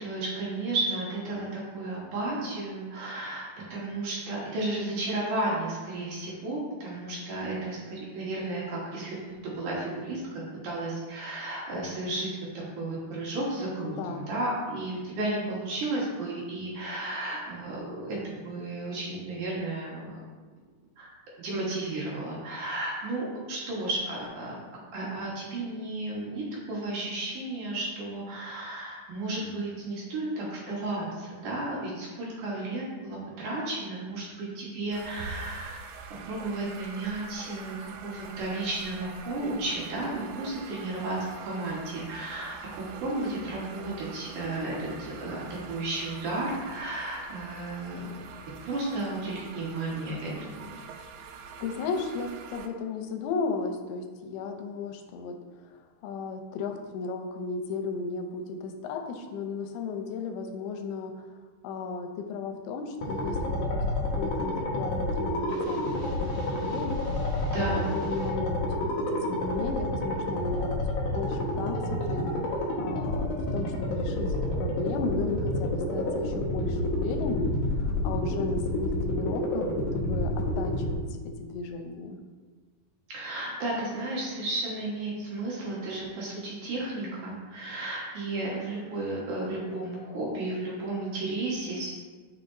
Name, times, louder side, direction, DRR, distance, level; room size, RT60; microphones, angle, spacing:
voice 1, 0.0-12.3 12.5-20.2 21.0-21.1 21.4-24.5 24.9-35.8 36.2-41.2 41.4-42.5 43.0-45.4 45.7-48.1 48.6-50.7 67.5-68.0 83.1-91.9, right 2 dB, 60° right, -5 dB, 2.7 m, -33 dB
voice 2, 13.8-14.3 51.6-55.4 56.0-61.3 61.6-66.9 67.5-71.8 72.1-72.3 72.8-81.0 81.4-82.2, left 4 dB, 85° left, 4 dB, 2.7 m, -35 dB
sound 1, 34.9-52.7, right 5 dB, 85° right, 2.4 m, -45 dB
sound 2, 63.0-80.9, left 1 dB, 70° left, 2.1 m, -29 dB
sound 3, 65.5-68.3, left 1 dB, 35° left, 2.2 m, -49 dB
9.4 x 5.9 x 2.7 m, 1.4 s
omnidirectional pair, 4.5 m